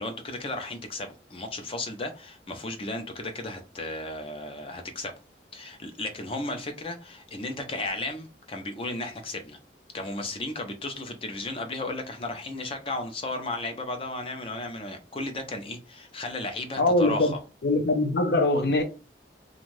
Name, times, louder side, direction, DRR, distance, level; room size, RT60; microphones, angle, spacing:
voice 1, 0.0-5.1 5.5-9.6 9.9-17.4, left 2 dB, 30° left, 0.5 m, -34 dB
voice 2, 16.8-17.3 17.6-18.8, left 2 dB, 70° left, 0.7 m, -22 dB
2.6 x 2.3 x 3.2 m
head